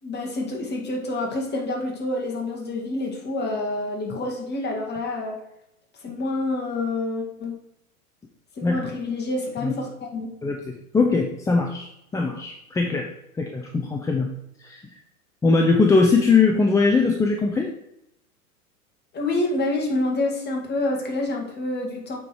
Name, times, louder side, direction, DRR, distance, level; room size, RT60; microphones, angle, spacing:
voice 1, 0.0-5.4 6.0-7.6 8.6-10.3 19.1-22.2, left 2 dB, 20° left, 0 dB, 2.3 m, -27 dB
voice 2, 10.4-13.1 13.3-14.3 14.6-14.8 15.4-17.7, left 4 dB, 5° left, 2 dB, 0.5 m, -21 dB
8.5 x 4.8 x 4.7 m, 0.80 s
hypercardioid pair, 100°, 44 cm